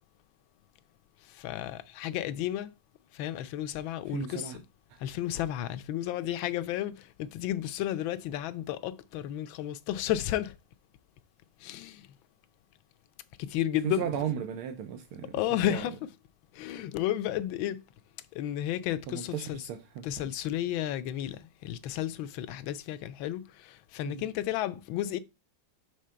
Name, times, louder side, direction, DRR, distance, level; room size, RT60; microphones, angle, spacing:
voice 1, 1.3-2.7 3.1-4.5 5.0-10.5 11.6-12.1 13.4-14.1 15.3-15.9 16.5-17.8 18.3-19.7 20.0-25.2, left 12 dB, 75° left, 1.3 m, -32 dB
voice 2, 4.1-4.6 13.8-15.8 19.1-20.3 24.0-24.3, right 9 dB, 85° right, 1.6 m, -36 dB
6.4 x 3.6 x 5.5 m
omnidirectional pair, 2.3 m